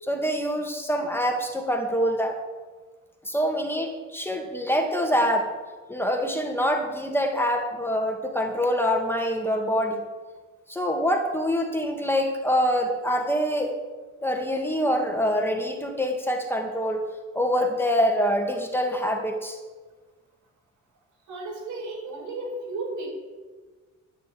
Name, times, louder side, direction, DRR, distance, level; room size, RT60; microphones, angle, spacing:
voice 1, 0.0-2.4 3.3-5.5 5.9-10.0 10.7-13.8 14.2-17.0 17.3-19.6, equal, 5° left, 2 dB, 2.0 m, -25 dB
voice 2, 21.3-23.1, right 2 dB, 80° right, 0 dB, 5.2 m, -34 dB
14.0 x 6.8 x 8.5 m, 1.4 s
cardioid pair, 90°, 30 cm